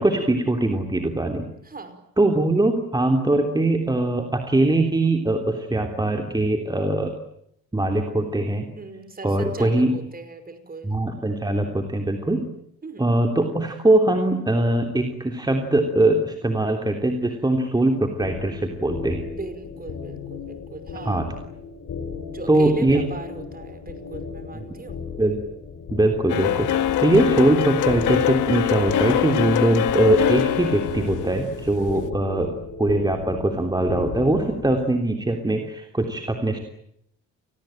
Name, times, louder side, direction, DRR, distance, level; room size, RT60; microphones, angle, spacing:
voice 1, 0.0-1.5 2.2-7.1 7.7-8.7 9.2-9.9 10.8-12.4 13.0-19.3 21.0-21.3 22.5-23.0 25.2-25.4 25.9-32.5 32.8-36.6, right 2 dB, 15° right, 4 dB, 3.3 m, -21 dB
voice 2, 1.6-2.0 8.8-11.0 12.8-13.1 19.2-21.2 22.3-25.1 31.8-32.0, right 3 dB, 30° right, 10 dB, 5.3 m, -38 dB
sound 1, 18.2-34.9, left 5 dB, 55° left, 4.7 m, -36 dB
sound 2, 26.3-32.1, left 11 dB, 80° left, 1.8 m, -23 dB
30.0 x 20.0 x 9.2 m, 0.74 s
cardioid pair, 90°, 30 cm